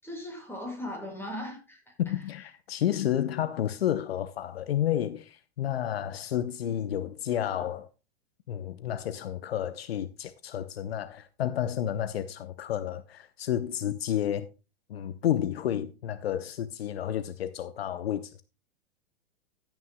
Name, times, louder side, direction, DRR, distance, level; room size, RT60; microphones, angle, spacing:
voice 1, 0.0-2.2, left 1 dB, 5° left, 5.7 m, -39 dB
voice 2, 2.0-7.9 8.5-14.5 14.9-18.4, left 11 dB, 70° left, 0.9 m, -31 dB
15.0 x 9.3 x 2.2 m
hypercardioid pair, 105°, 31 cm